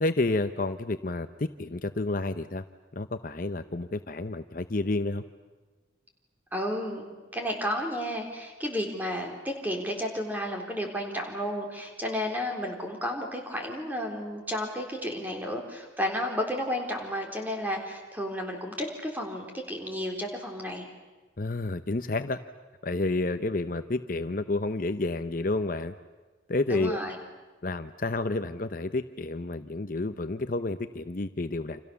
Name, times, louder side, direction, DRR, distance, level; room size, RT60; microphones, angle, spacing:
voice 1, 0.0-2.6 3.0-5.2 21.4-22.4 22.8-25.9 26.5-27.0 27.6-31.8, left 2 dB, 45° left, 10 dB, 0.8 m, -30 dB
voice 2, 6.5-20.9 26.7-27.2, equal, 10° right, 1 dB, 3.9 m, -32 dB
29.0 x 27.5 x 7.0 m, 1.3 s
head